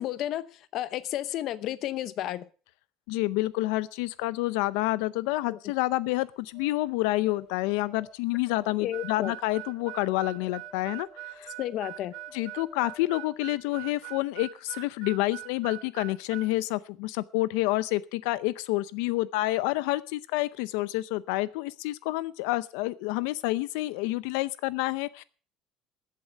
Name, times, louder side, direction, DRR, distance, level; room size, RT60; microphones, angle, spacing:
voice 1, 0.0-2.5 5.5-5.6 8.8-9.3 11.6-12.1, left 13 dB, 45° left, 15 dB, 0.7 m, -32 dB
voice 2, 3.1-11.5 12.3-25.2, left 18 dB, 85° left, 17 dB, 0.5 m, -28 dB
sound 1, 6.3-14.4 14.7-14.8, left 1 dB, 25° right, 3.2 m, -53 dB
Harmonica, 8.9-16.5, right 18 dB, 60° right, 0.5 m, -42 dB
14.0 x 8.5 x 6.4 m, 0.39 s
cardioid pair, 175°, 0 cm